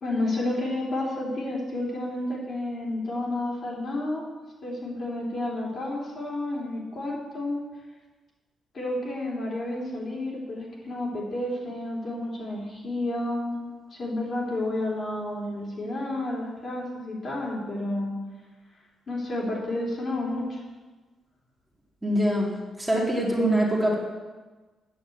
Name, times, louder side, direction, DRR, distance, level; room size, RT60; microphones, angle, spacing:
voice 1, 0.0-4.3 4.6-7.6 8.7-13.6 13.9-18.2 19.1-20.6, left 1 dB, 45° left, -3 dB, 3.5 m, -30 dB
voice 2, 22.0-24.0, right 1 dB, 10° right, -3 dB, 2.2 m, -24 dB
8.8 x 6.9 x 8.0 m, 1.3 s
cardioid pair, 100°, 0 cm